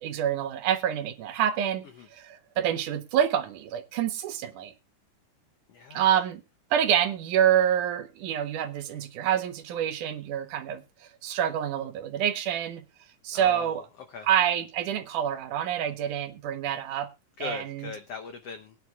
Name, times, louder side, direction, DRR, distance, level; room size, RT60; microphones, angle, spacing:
voice 1, 0.0-1.8 2.1-4.7 5.9-6.4 6.7-10.8 11.2-12.8 13.2-13.8 14.3-17.1 17.4-17.9, right 10 dB, 75° right, 2.3 m, -27 dB
voice 2, 5.7-6.2 13.3-14.3 17.4-18.7, left 5 dB, 85° left, 1.3 m, -40 dB
22.0 x 9.6 x 2.3 m
omnidirectional pair, 4.0 m